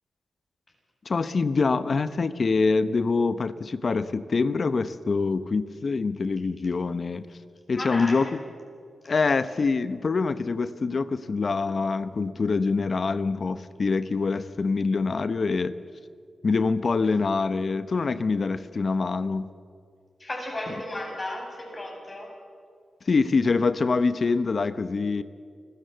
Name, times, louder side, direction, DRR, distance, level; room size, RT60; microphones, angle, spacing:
voice 1, 1.0-7.3 7.7-8.4 9.0-15.7 16.4-19.5 20.7-20.8 23.1-25.2, left 4 dB, 55° left, 14 dB, 0.8 m, -25 dB
voice 2, 7.7-8.3 20.2-22.3, left 1 dB, 35° left, 0 dB, 7.7 m, -34 dB
28.0 x 13.5 x 7.9 m, 2.2 s
cardioid pair, 60°, 0 cm